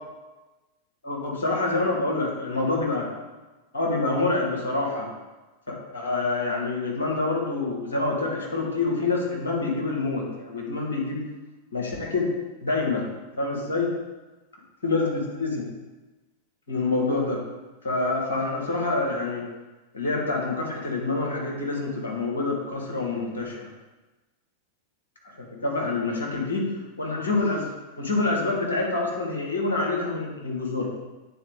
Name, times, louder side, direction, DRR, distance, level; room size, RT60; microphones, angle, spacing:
voice 1, 1.0-3.1 3.7-5.1 5.7-11.2 11.7-12.3 12.6-13.1 13.4-13.9 14.8-15.6 16.7-17.4 17.8-19.5 19.9-23.7 25.4-26.7 27.0-27.7 28.0-30.9, left 3 dB, 70° left, -2 dB, 1.6 m, -26 dB
9.0 x 4.0 x 3.6 m, 1.2 s
figure-of-eight pair, 90°, 0 cm